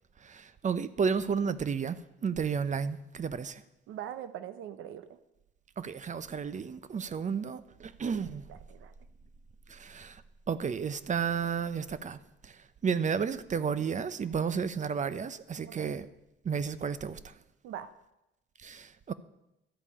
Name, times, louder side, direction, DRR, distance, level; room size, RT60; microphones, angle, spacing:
voice 1, 0.2-3.6 5.8-8.4 9.7-10.2 10.5-16.1 16.4-17.3 18.6-19.1, right 6 dB, 40° right, 0.7 m, -32 dB
voice 2, 3.9-5.2 8.5-8.9 15.6-16.0 17.6-17.9, right 10 dB, 85° right, 0.7 m, -42 dB
12.5 x 5.3 x 8.5 m
cardioid pair, 90°, 20 cm